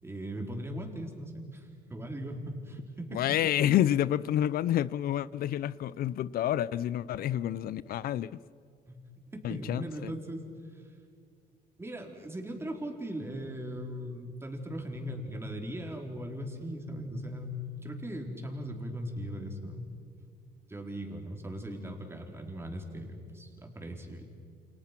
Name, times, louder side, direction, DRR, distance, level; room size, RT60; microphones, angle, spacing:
voice 1, 0.0-3.5 8.9-10.4 10.7-10.9 11.8-19.9 20.7-24.3, equal, 15° right, 4.3 m, -39 dB
voice 2, 3.1-8.3 9.4-10.1, left 11 dB, 60° left, 0.6 m, -29 dB
29.0 x 28.5 x 6.0 m
cardioid pair, 110°, 17 cm